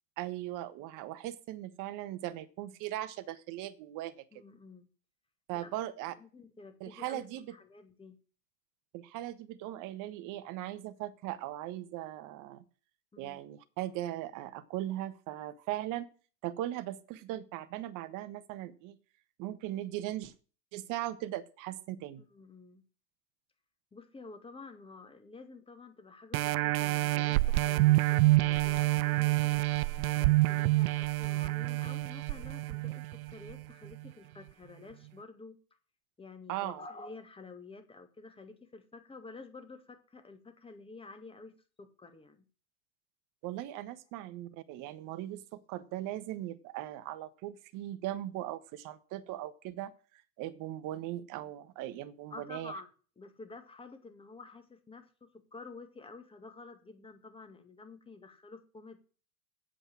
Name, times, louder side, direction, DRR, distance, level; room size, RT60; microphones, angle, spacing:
voice 1, 0.2-4.2 5.5-6.1 6.8-7.5 8.9-12.6 13.2-16.1 16.4-19.0 19.4-20.3 20.7-22.2 36.5-36.8 43.4-49.9 50.4-52.7, right 14 dB, 45° right, 13 dB, 1.4 m, -39 dB
voice 2, 4.3-4.9 5.6-5.7 6.2-8.2 13.1-13.4 22.3-22.8 23.9-29.7 30.2-35.6 36.2-41.5 41.8-42.5 52.3-52.9 53.2-59.1, left 3 dB, 10° left, 8 dB, 2.0 m, -50 dB
sound 1, 26.3-33.5 34.1-34.2, right 20 dB, 75° right, 0.5 m, -27 dB
8.4 x 7.9 x 7.7 m, 0.38 s
hypercardioid pair, 110°, 44 cm